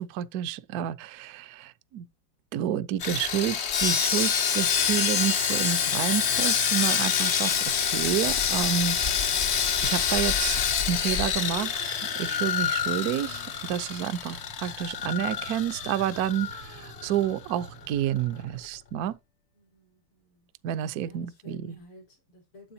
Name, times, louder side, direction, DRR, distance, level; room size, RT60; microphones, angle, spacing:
voice 1, 0.0-2.1 2.5-9.0 9.2-9.6 9.8-10.6 10.9-11.8 12.1-19.2 20.6-21.8, right 10 dB, 70° right, 0.9 m, -29 dB
Sawing, 3.0-17.3 17.5-17.7 18.2-18.3, left 7 dB, 65° left, 0.6 m, -27 dB
sound 1, 7.9-18.6, right 5 dB, 85° right, 2.3 m, -49 dB
voice 2, 19.6-20.5 20.7-22.7, left 1 dB, 85° left, 5.1 m, -53 dB
9.8 x 7.6 x 2.8 m
omnidirectional pair, 2.3 m